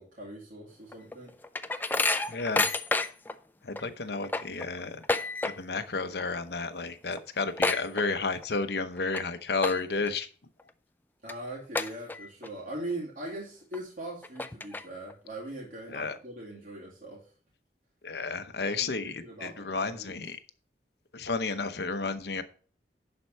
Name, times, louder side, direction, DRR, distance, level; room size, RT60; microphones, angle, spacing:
voice 1, 0.0-1.3 11.2-17.2 18.7-20.2, right 1 dB, 50° right, -4 dB, 2.6 m, -41 dB
sound 1, 0.9-3.4 3.8-3.9 4.1-5.9 6.1-6.5 6.8-6.9 7.1-8.5 9.0-9.2 9.6-10.1 10.6-10.7 11.3-11.4 11.8-12.5 12.9-13.0 13.7-13.8 14.2-15.1, left 3 dB, 10° left, 0.4 m, -30 dB
voice 2, 2.3-2.7 3.6-5.0 5.4-10.3 15.9-16.2 18.0-20.4 21.1-22.4, left 4 dB, 65° left, 10 dB, 0.9 m, -32 dB
11.0 x 4.5 x 5.4 m, 0.41 s
head